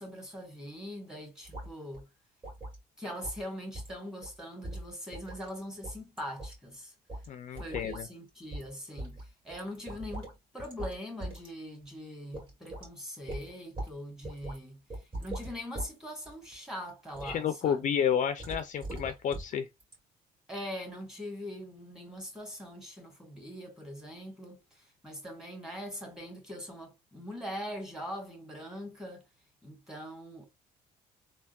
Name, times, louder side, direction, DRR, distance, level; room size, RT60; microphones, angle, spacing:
voice 1, 0.0-2.1 3.0-6.9 7.6-14.8 15.2-17.8 20.5-29.2 29.6-30.5, equal, 5° right, 1.2 m, -42 dB
sound 1, 1.4-1.7 1.9-2.0 2.4-2.8 3.2-3.4 3.7-3.9 4.2-4.4 4.6-5.5 5.8-6.5 7.1-7.3 7.5-8.0 8.5-8.7 9.0-10.3 10.6-10.9 11.2-11.5 11.8-11.9 12.3-12.9 13.3-13.9 14.2-14.6 14.9-15.9 16.2-16.5 17.1-17.4 18.4-19.5 19.8-19.9, right 1 dB, 30° right, 1.8 m, -40 dB
voice 2, 7.3-8.1 17.2-19.7, left 8 dB, 45° left, 0.4 m, -30 dB
3.4 x 2.1 x 2.2 m
cardioid pair, 110°, 17 cm